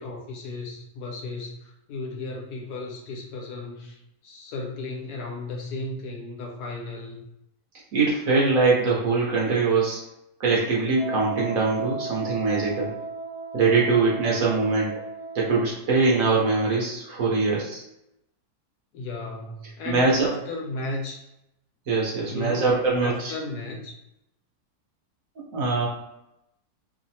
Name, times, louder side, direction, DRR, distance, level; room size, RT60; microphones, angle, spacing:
voice 1, 0.0-4.0 4.2-7.2 18.9-21.2 22.3-23.9, left 2 dB, 75° left, 0 dB, 1.2 m, -35 dB
voice 2, 7.9-10.0 10.4-13.0 13.5-15.0 15.3-17.8 19.8-20.3 21.9-23.3 25.5-25.9, right 4 dB, 60° right, -4 dB, 1.2 m, -22 dB
Wind instrument woodwind instrument, 10.9-15.7, right 3 dB, 40° left, 0.4 m, -35 dB
3.1 x 2.1 x 2.7 m, 0.85 s
omnidirectional pair, 1.7 m